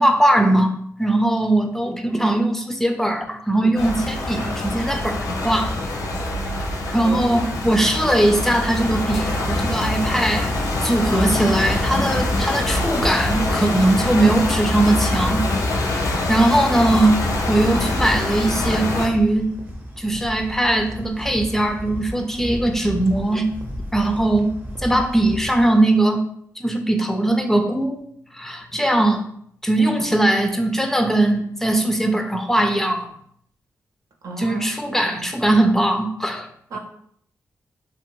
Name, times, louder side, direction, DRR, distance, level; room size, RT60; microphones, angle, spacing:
voice 1, 0.0-5.8 6.9-10.6 10.8-15.4 16.0-17.2 17.5-19.5 20.0-23.5 23.9-24.5 24.8-26.2 26.6-28.0 28.3-29.2 29.6-33.1 34.4-36.5, right 1 dB, 5° left, 4 dB, 0.4 m, -20 dB
sound 1, 3.8-19.1, left 2 dB, 75° left, 0.5 m, -24 dB
voice 2, 6.7-7.4 8.0-8.2 16.5-16.7 34.2-35.2 36.7-36.8, right 3 dB, 80° right, 3 dB, 0.5 m, -35 dB
sound 2, 7.6-25.7, equal, 25° right, 0.7 m, -36 dB
2.6 x 2.5 x 2.9 m, 0.66 s
cardioid pair, 70°, 6 cm